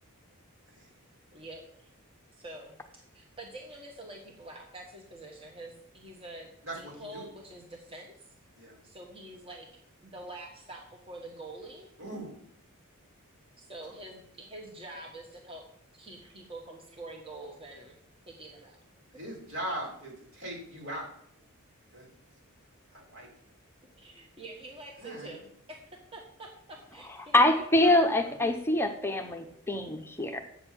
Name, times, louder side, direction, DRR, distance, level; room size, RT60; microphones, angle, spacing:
voice 1, 1.3-1.6 2.4-6.5 6.7-8.1 8.8-9.7 10.0-11.9 13.6-15.6 15.9-18.0 18.3-18.8 23.9-25.8 26.1-28.0, right 2 dB, 25° right, 1 dB, 1.5 m, -46 dB
voice 2, 6.6-7.2 8.6-8.8 12.0-12.4 19.1-21.1 21.9-22.1 22.9-23.3 25.0-25.4 27.8-27.9, right 1 dB, 65° right, -2 dB, 4.7 m, -40 dB
voice 3, 27.3-30.4, left 1 dB, 10° left, 4 dB, 0.8 m, -25 dB
8.8 x 6.6 x 7.4 m, 0.72 s
head